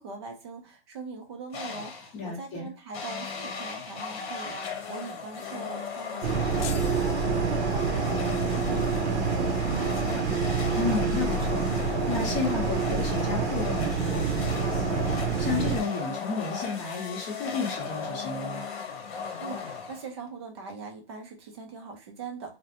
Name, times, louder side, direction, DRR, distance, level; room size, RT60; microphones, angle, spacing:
voice 1, 0.0-10.4 19.4-22.6, right 4 dB, 25° right, 3 dB, 0.4 m, -42 dB
sound 1, 1.5-2.2 2.9-20.3, left 6 dB, 60° left, 0.9 m, -36 dB
voice 2, 2.1-2.7 10.8-18.7, left 4 dB, 20° left, -1 dB, 0.7 m, -33 dB
sound 2, 6.2-15.8, right 6 dB, 80° right, 0.6 m, -27 dB
sound 3, 6.6-8.2, left 8 dB, 85° left, 0.5 m, -42 dB
2.4 x 2.1 x 2.8 m, 0.31 s
hypercardioid pair, 155°, 34 cm